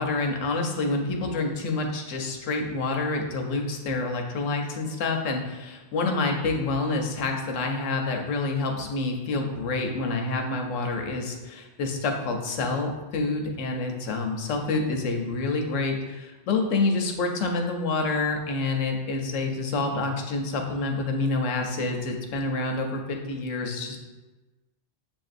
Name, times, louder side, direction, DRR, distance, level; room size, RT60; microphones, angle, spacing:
voice 1, 0.0-24.0, left 3 dB, 80° left, 3 dB, 1.0 m, -28 dB
7.3 x 2.6 x 2.5 m, 1.2 s
omnidirectional pair, 1.3 m